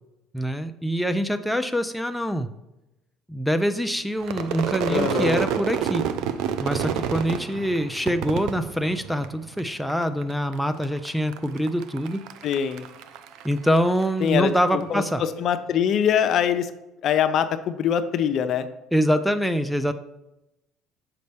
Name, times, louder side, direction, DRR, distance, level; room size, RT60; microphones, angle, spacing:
voice 1, 0.3-2.5 3.3-6.0 6.6-12.2 13.4-15.2 18.9-19.9, equal, ahead, 7 dB, 0.4 m, -24 dB
Crowd / Fireworks, 4.2-9.6 9.9-10.5 10.8-14.4, right 8 dB, 70° right, 0.4 m, -29 dB
voice 2, 4.9-5.4 12.4-12.9 14.2-16.7 17.0-18.7, left 8 dB, 55° left, 10 dB, 0.5 m, -23 dB
6.7 x 5.2 x 3.4 m, 0.94 s
supercardioid pair, 105°, 0 cm